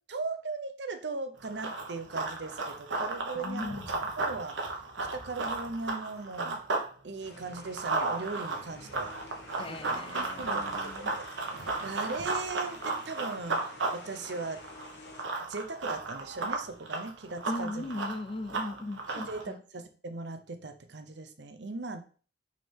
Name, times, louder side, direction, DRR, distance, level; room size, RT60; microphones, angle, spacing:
voice 1, 0.1-3.8 4.2-4.6 5.1-6.6 7.0-9.1 9.7-11.3 11.6-14.6 15.4-17.9 19.1-22.0, right 3 dB, 65° right, 0.8 m, -38 dB
Run, 1.4-6.9 7.2-19.4, right 3 dB, 90° right, 1.4 m, -34 dB
voice 2, 3.3-4.1 9.6-11.1 17.5-19.6, left 2 dB, 30° left, 0.4 m, -38 dB
sound 1, 7.2-15.2, left 2 dB, 65° left, 1.2 m, -50 dB
6.1 x 3.7 x 4.4 m
head